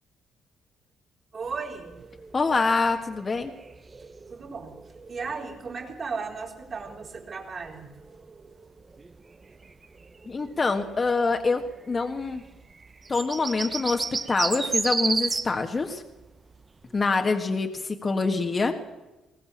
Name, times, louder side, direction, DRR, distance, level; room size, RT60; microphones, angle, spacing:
voice 1, 1.3-1.9 4.3-4.8 5.1-7.9 8.3-8.7, right 5 dB, 45° right, 0 dB, 4.9 m, -36 dB
sound 1, 1.5-15.6 15.9-16.0 16.2-16.7 16.9-17.0, right 4 dB, 30° right, 0.9 m, -35 dB
voice 2, 2.3-3.5 10.2-12.4 13.1-16.0 16.9-18.8, left 4 dB, 35° left, 4 dB, 1.7 m, -25 dB
21.0 x 17.5 x 7.4 m, 1.1 s
cardioid pair, 90°, 0 cm